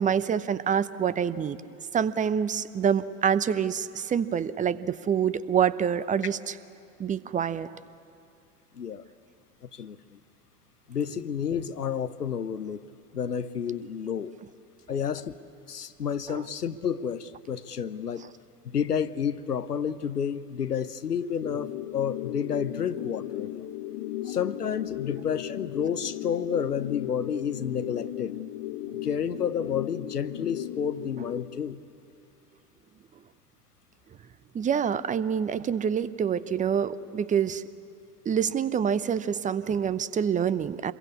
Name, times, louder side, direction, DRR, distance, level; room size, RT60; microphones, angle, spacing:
voice 1, 0.0-1.6 1.9-6.4 7.0-7.7 16.3-16.4 34.5-37.6 38.3-40.9, right 8 dB, 15° right, 17 dB, 0.7 m, -26 dB
voice 2, 8.7-9.0 9.7-10.2 10.9-12.9 13.1-14.3 14.9-15.3 15.7-18.2 18.6-23.7 24.2-28.3 29.0-31.8, left 7 dB, 85° left, 14 dB, 0.9 m, -30 dB
sound 1, 21.4-31.4, left 14 dB, 50° left, 1.3 m, -36 dB
26.0 x 22.0 x 8.4 m, 2.5 s
figure-of-eight pair, 85°, 46 cm